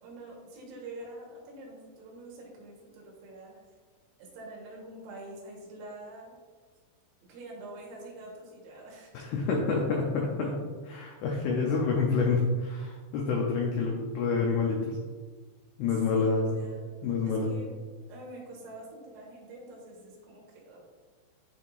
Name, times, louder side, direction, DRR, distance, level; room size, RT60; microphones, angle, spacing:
voice 1, 0.0-3.5 4.2-6.3 7.2-9.1 16.1-16.9 17.2-17.7 18.1-20.8, right 2 dB, 70° right, -3 dB, 3.1 m, -46 dB
voice 2, 9.1-10.6 10.8-15.0 15.8-16.6 17.0-17.5, left 4 dB, 85° left, -1 dB, 2.4 m, -28 dB
10.5 x 3.6 x 2.5 m, 1.4 s
omnidirectional pair, 5.5 m